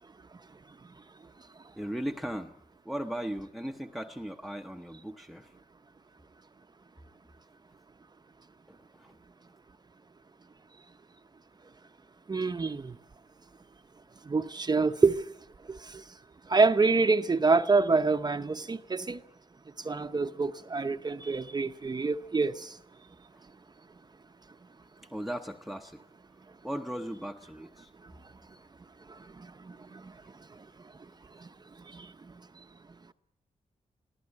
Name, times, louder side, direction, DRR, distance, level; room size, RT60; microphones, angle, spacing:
voice 1, 1.8-2.5 2.8-5.5 8.7-9.2 25.1-26.0 26.6-27.9, equal, ahead, 0.9 m, -37 dB
voice 2, 12.3-12.9 14.3-15.2 16.5-19.2 19.9-22.5, right 4 dB, 30° right, 0.8 m, -26 dB
23.0 x 15.0 x 9.8 m
wide cardioid pair, 100°, 14 cm